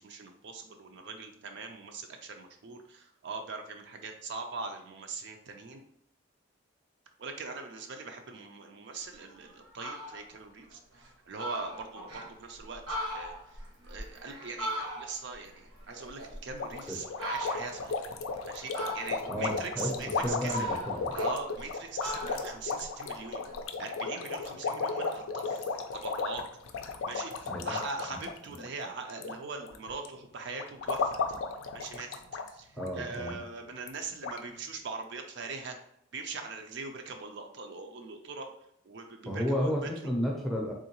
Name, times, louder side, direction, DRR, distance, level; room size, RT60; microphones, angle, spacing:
voice 1, 0.0-5.8 7.2-17.9 18.5-20.7 21.1-25.7 25.9-26.4 27.1-31.2 31.7-32.2 32.5-35.8 36.1-38.5 38.9-39.9, right 4 dB, 55° right, 4 dB, 0.4 m, -41 dB
Fowl, 9.1-9.3 9.6-10.2 10.7-10.8 11.1-11.2 11.4-12.3 12.7-15.3 15.7-16.7 17.2-17.8 18.7-19.4 20.0-21.7 22.0-23.6, equal, 80° right, 1.2 m, -38 dB
sound 1, 16.6-29.4 29.6-30.1 30.6-32.5 32.8-32.9 33.2-33.3 33.9-34.0 34.2-34.4, left 4 dB, 70° left, 0.4 m, -34 dB
voice 2, 19.3-21.2 27.5-27.8 32.7-33.5 39.2-40.7, equal, ahead, -1 dB, 0.5 m, -32 dB
3.7 x 3.0 x 2.9 m, 0.72 s
head